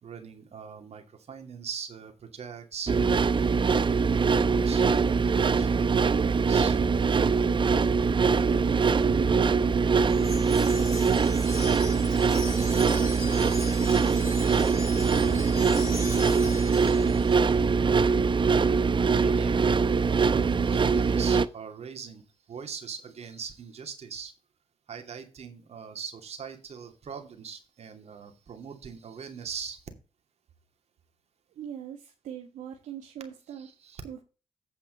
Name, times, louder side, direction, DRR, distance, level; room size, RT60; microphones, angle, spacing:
voice 1, 0.0-3.0 3.6-7.0 9.1-9.3 17.8-24.3 24.9-29.9 33.6-34.0, right 6 dB, 60° right, 5 dB, 2.7 m, -41 dB
sound 1, 2.9-21.5, right 5 dB, 40° right, 0.8 m, -23 dB
voice 2, 8.4-13.4 13.8-16.7 31.5-33.7 34.0-34.2, right 9 dB, 80° right, 3 dB, 1.4 m, -41 dB
Wind chime, 10.1-17.6, left 3 dB, 20° left, 5.3 m, -40 dB
9.1 x 5.8 x 5.2 m, 0.32 s
supercardioid pair, 55°, 13 cm